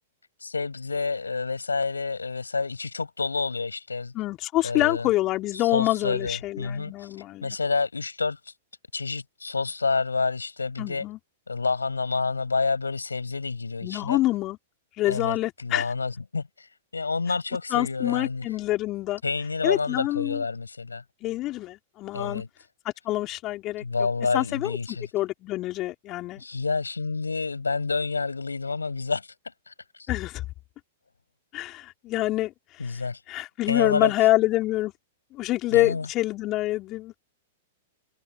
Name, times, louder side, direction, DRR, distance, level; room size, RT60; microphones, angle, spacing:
voice 1, 0.4-4.1 4.6-5.1 5.7-7.1 7.4-8.4 8.9-11.0 11.5-14.2 15.1-18.5 19.2-21.0 22.1-22.5 23.8-25.1 26.4-29.3 29.7-29.8 32.8-33.2 33.7-34.1 35.7-36.1, left 4 dB, 85° left, 7.2 m, -28 dB
voice 2, 4.1-7.6 10.8-11.2 13.8-14.6 15.0-15.9 17.7-19.2 19.6-20.4 21.2-22.4 22.8-23.8 24.3-24.8 25.1-26.4 30.1-30.4 31.5-32.9 33.3-34.9 35.3-37.1, left 17 dB, 35° left, 3.9 m, -26 dB
figure-of-eight pair, 105°, 0 cm